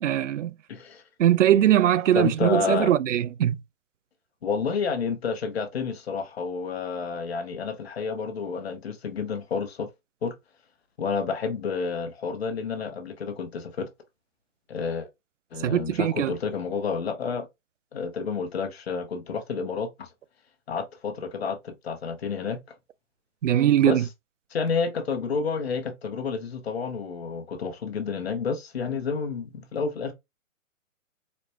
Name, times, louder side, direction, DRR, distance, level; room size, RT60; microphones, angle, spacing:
voice 1, 0.0-0.5 1.2-3.6 15.6-16.3 23.4-24.0, right 11 dB, 65° right, 0.5 m, -21 dB
voice 2, 0.7-1.0 2.1-2.9 4.4-9.9 10.2-10.3 11.0-13.9 14.7-15.1 15.5-17.5 17.9-20.1 20.7-22.6 23.8-24.1 24.5-30.1, left 5 dB, 50° left, 0.9 m, -30 dB
4.2 x 2.1 x 3.1 m
hypercardioid pair, 165°, 40 cm